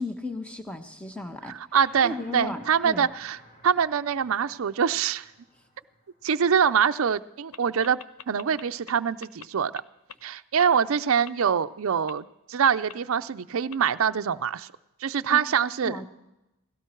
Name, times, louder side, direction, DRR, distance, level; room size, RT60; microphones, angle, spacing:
voice 1, 0.0-1.6 2.0-3.1 6.3-6.4 15.3-15.4 15.8-16.0, left 2 dB, 5° left, 6 dB, 1.1 m, -35 dB
voice 2, 1.5-3.4 3.6-5.2 6.2-8.0 8.3-9.7 10.2-14.7 15.0-16.0, right 7 dB, 70° right, 12 dB, 0.5 m, -24 dB
sound 1, 1.8-7.2, left 1 dB, 40° left, 4.2 m, -55 dB
sound 2, 7.5-7.6 7.8-8.9 9.2-9.5 9.7-9.8 10.1-10.2 10.6-10.7 11.3-11.4 12.1-12.2 12.9-13.0 13.7-13.8, left 8 dB, 75° left, 0.6 m, -42 dB
17.5 x 17.0 x 4.5 m, 0.94 s
head